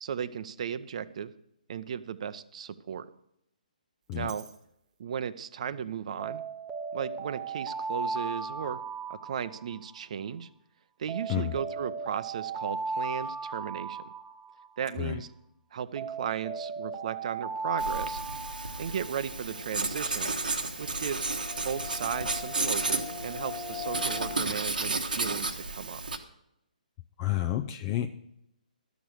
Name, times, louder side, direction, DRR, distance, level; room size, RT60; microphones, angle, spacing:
voice 1, 0.0-1.3 1.7-3.1 4.1-4.5 5.0-6.4 6.9-8.8 9.1-10.5 11.0-14.0 14.8-15.3 15.7-18.2 18.8-20.4 20.8-21.3 21.6-26.0, right 8 dB, 50° right, 15 dB, 0.7 m, -35 dB
Alarm, 4.1-4.5 6.2-10.0 11.1-14.8 16.0-19.2, right 4 dB, 10° right, 0.9 m, -36 dB
Writing, 17.8-26.2, right 3 dB, 85° right, 1.3 m, -33 dB
sound 1, 19.3-24.5, left 5 dB, 70° left, 1.3 m, -42 dB
voice 2, 27.2-28.1, left 14 dB, 25° left, 7 dB, 0.5 m, -29 dB
12.0 x 7.2 x 6.4 m, 0.80 s
figure-of-eight pair, 140°, 5 cm